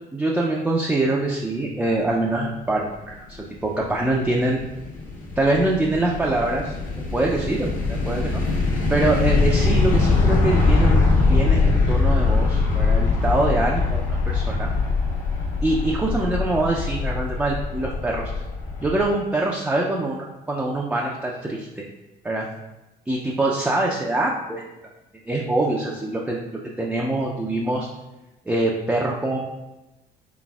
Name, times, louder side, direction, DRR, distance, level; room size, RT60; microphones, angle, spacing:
voice 1, 0.1-4.6 5.4-6.7 7.1-8.4 8.9-14.7 15.6-18.2 18.8-21.8 22.2-22.5 23.1-24.6 25.3-26.4 26.8-27.9 28.5-29.4, right 2 dB, 5° right, -2 dB, 0.4 m, -24 dB
sound 1, 3.5-19.0, left 3 dB, 55° left, 1.1 m, -22 dB
4.1 x 4.0 x 2.3 m, 1.0 s
cardioid pair, 110°, 17 cm